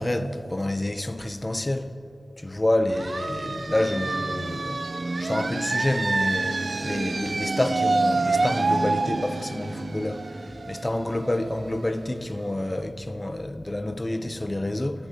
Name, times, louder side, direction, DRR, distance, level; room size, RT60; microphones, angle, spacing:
voice 1, 0.0-1.9 2.4-4.8 5.2-15.1, left 1 dB, 25° left, 0.6 m, -28 dB
sound 1, 2.9-12.4, right 3 dB, 55° right, 0.4 m, -27 dB
25.0 x 12.0 x 2.9 m
wide cardioid pair, 90°, 0 cm